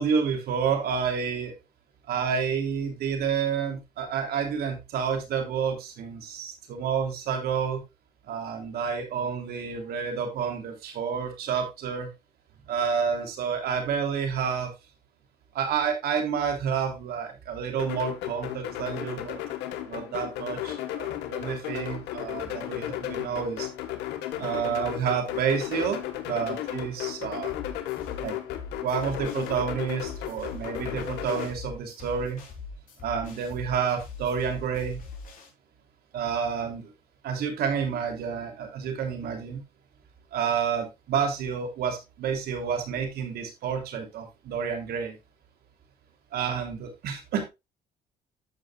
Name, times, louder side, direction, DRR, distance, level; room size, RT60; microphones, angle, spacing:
voice 1, 0.0-1.5 2.1-7.8 8.3-12.1 12.7-14.7 15.5-19.4 19.8-23.7 24.4-26.0 26.2-27.5 28.2-28.4 28.8-32.4 33.0-35.0 36.1-36.9 37.2-39.6 40.3-45.2 46.3-47.5, right 7 dB, 70° right, 4 dB, 3.0 m, -29 dB
sound 1, 17.8-31.5, left 12 dB, 85° left, 1.6 m, -34 dB
sound 2, 27.5-35.5, left 4 dB, 50° left, 3.6 m, -42 dB
13.5 x 5.6 x 2.4 m, 0.23 s
cardioid pair, 110°, 17 cm